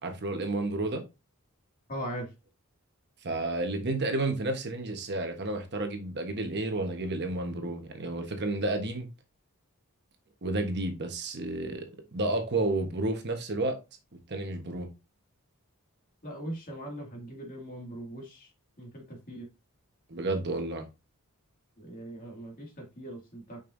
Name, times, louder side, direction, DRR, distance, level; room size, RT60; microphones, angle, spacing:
voice 1, 0.0-1.0 3.2-9.1 10.4-11.8 12.1-13.8 14.1-14.9 20.1-20.9, right 2 dB, 50° right, 1.2 m, -31 dB
voice 2, 1.9-2.3 16.2-18.5 18.8-19.5 21.8-23.6, right 1 dB, 40° left, 2.3 m, -40 dB
6.8 x 5.4 x 2.7 m
head